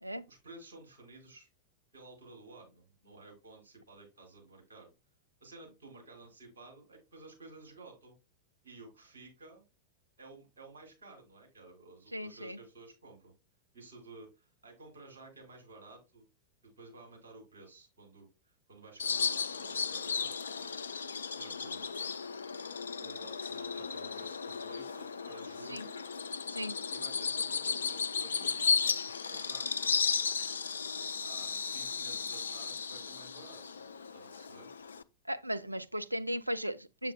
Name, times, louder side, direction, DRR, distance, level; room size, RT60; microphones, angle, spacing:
voice 1, 0.3-1.5 1.9-4.9 5.4-8.1 8.6-9.6 10.2-13.3 13.7-16.3 16.8-20.7 21.3-21.9 23.0-26.0 26.9-29.9 30.9-33.6 34.1-34.7, right 2 dB, 70° right, 4.4 m, -53 dB
voice 2, 12.1-12.6 25.7-25.9 26.5-26.8 35.3-37.1, equal, 85° right, 0.5 m, -36 dB
Bird vocalization bird call bird song, 19.0-35.0, left 5 dB, 70° left, 0.4 m, -35 dB
8.0 x 7.2 x 2.2 m
figure-of-eight pair, 90°, 0 cm